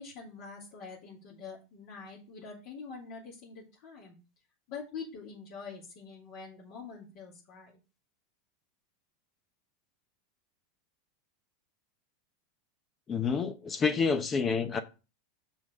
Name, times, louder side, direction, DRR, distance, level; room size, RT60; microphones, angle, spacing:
voice 1, 0.0-4.2 4.7-7.7, left 5 dB, 50° left, 2.9 m, -45 dB
voice 2, 13.1-14.8, left 5 dB, 20° left, 0.8 m, -28 dB
6.4 x 6.1 x 5.2 m
supercardioid pair, 140°, 0 cm